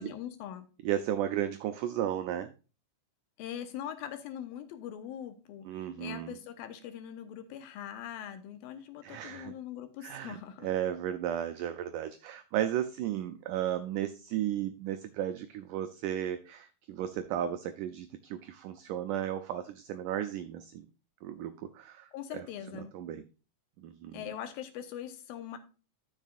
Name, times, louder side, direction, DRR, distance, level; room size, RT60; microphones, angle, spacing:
voice 1, 0.0-0.7 3.4-10.7 22.1-22.9 24.1-25.6, left 10 dB, 80° left, 9 dB, 2.7 m, -42 dB
voice 2, 0.8-2.5 5.7-6.3 9.0-9.5 10.0-10.4 10.6-20.9 21.2-22.5 22.7-23.2 23.8-24.2, right 11 dB, 90° right, 9 dB, 1.8 m, -34 dB
12.5 x 7.3 x 2.4 m, 0.33 s
omnidirectional pair, 4.4 m